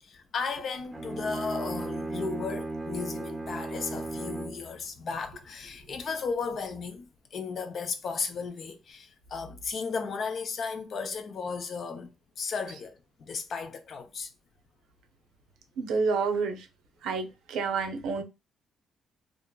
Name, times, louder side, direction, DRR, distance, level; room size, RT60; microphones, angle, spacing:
voice 1, 0.0-12.1 12.4-14.3, left 5 dB, 55° left, 0.6 m, -35 dB
Bowed string instrument, 0.8-4.7, right 2 dB, 20° right, 0.6 m, -35 dB
voice 2, 15.8-16.7 17.0-18.2, right 4 dB, 85° right, 0.6 m, -29 dB
2.8 x 2.4 x 2.2 m
cardioid pair, 90°, 0 cm